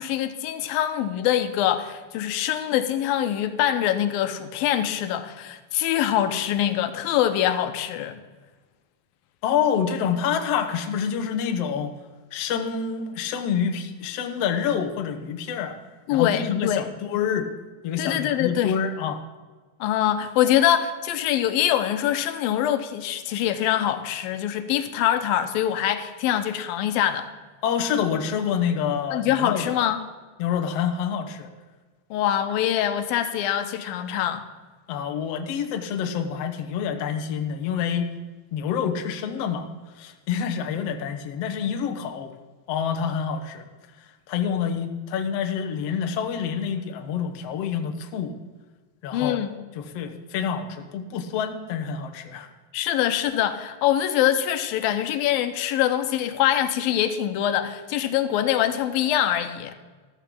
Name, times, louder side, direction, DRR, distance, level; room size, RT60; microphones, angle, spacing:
voice 1, 0.0-8.1 16.1-16.9 18.0-18.7 19.8-27.3 29.1-30.0 32.1-34.4 49.1-49.6 52.7-59.8, left 11 dB, 85° left, 9 dB, 2.6 m, -24 dB
voice 2, 9.4-11.9 12.3-15.8 16.1-17.5 17.8-19.2 27.6-29.8 30.4-31.5 34.9-38.1 38.5-39.7 40.0-42.3 42.7-43.6 44.3-48.3 49.0-49.4 49.7-52.5, left 7 dB, 70° left, 7 dB, 1.5 m, -27 dB
14.0 x 13.5 x 3.8 m, 1.3 s
omnidirectional pair, 4.1 m